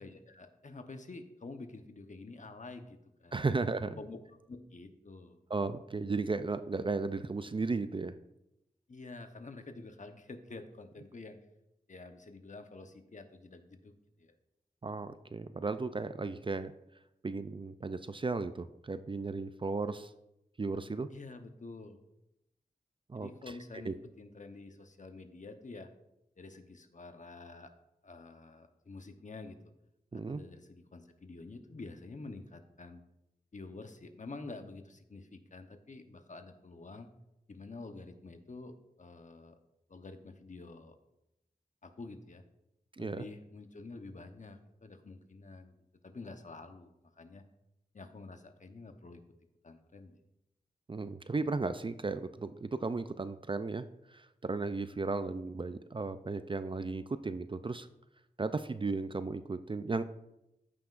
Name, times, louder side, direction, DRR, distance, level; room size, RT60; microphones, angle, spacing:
voice 1, 0.0-3.6 4.0-4.2 4.5-5.4 8.9-11.4 11.9-14.3 21.1-22.0 23.1-25.9 26.4-27.7 28.0-29.6 30.3-33.0 33.5-37.1 37.5-39.6 39.9-40.9 41.8-42.4 43.0-45.7 46.0-47.4 47.9-49.2 49.6-50.2, left 3 dB, 50° left, 7 dB, 0.9 m, -48 dB
voice 2, 3.3-4.0 5.5-8.1 14.8-16.7 17.2-20.1 20.6-21.1 23.1-23.3 23.9-24.0 30.1-30.4 43.0-43.2 50.9-57.9 58.4-60.0, right 3 dB, 30° right, 12 dB, 0.4 m, -35 dB
14.5 x 5.8 x 2.5 m, 0.88 s
cardioid pair, 50°, 16 cm